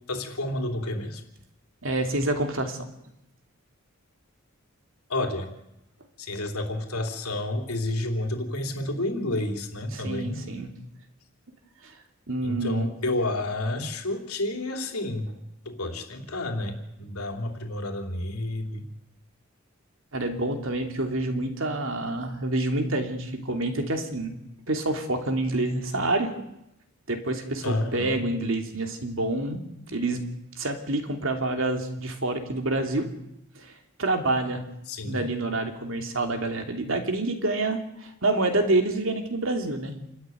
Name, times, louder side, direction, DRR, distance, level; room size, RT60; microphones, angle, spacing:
voice 1, 0.1-1.2 5.1-5.5 6.2-10.4 12.4-15.3 15.6-18.9 27.6-28.2 34.9-35.2, left 1 dB, 85° left, 4 dB, 3.3 m, -30 dB
voice 2, 1.8-2.8 9.9-10.7 11.8-11.9 12.3-12.9 20.1-24.3 24.7-26.3 27.1-29.6 29.9-30.2 30.6-33.1 33.6-33.7 34.0-34.6 35.1-40.0, right 2 dB, 60° right, 4 dB, 3.0 m, -27 dB
28.0 x 13.0 x 9.3 m, 0.85 s
head